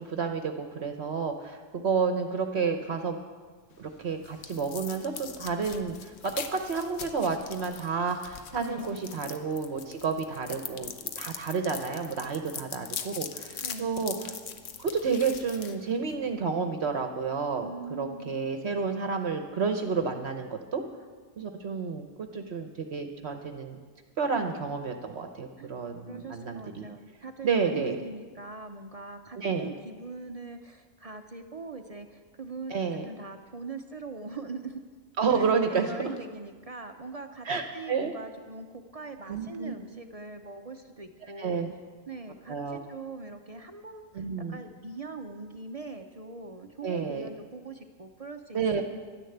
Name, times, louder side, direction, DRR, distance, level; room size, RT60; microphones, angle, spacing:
voice 1, 0.0-3.2 3.8-5.9 6.2-14.1 14.8-17.7 18.0-20.8 21.4-23.8 24.2-26.9 27.4-28.0 29.4-29.7 32.7-33.0 35.2-36.1 37.4-38.1 39.3-39.7 41.4-41.7 42.5-42.8 44.1-44.6 46.8-47.3 48.5-48.8, right 5 dB, 60° right, 6 dB, 1.1 m, -30 dB
sound 1, 3.7-16.4, left 7 dB, 75° left, 1.2 m, -42 dB
voice 2, 8.6-9.0 13.6-14.0 17.6-18.5 25.6-25.7 26.1-34.8 35.3-37.5 37.7-41.6 42.1-48.8, right 4 dB, 40° right, 6 dB, 0.6 m, -42 dB
11.5 x 10.0 x 7.9 m, 1.5 s
omnidirectional pair, 1.3 m